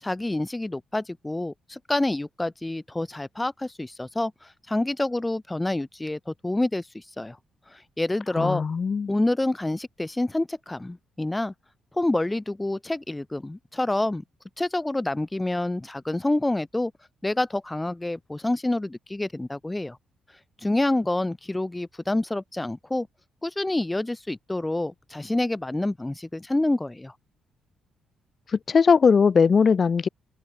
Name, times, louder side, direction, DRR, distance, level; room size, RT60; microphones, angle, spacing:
voice 1, 0.0-7.4 7.7-8.6 9.1-11.5 11.9-14.2 14.6-16.9 17.2-20.0 20.6-23.1 23.4-27.1, left 2 dB, 10° left, 2.5 m, -27 dB
voice 2, 8.4-9.1 28.7-30.1, left 5 dB, 40° left, 1.5 m, -19 dB
open air
cardioid pair, 90°, 0 cm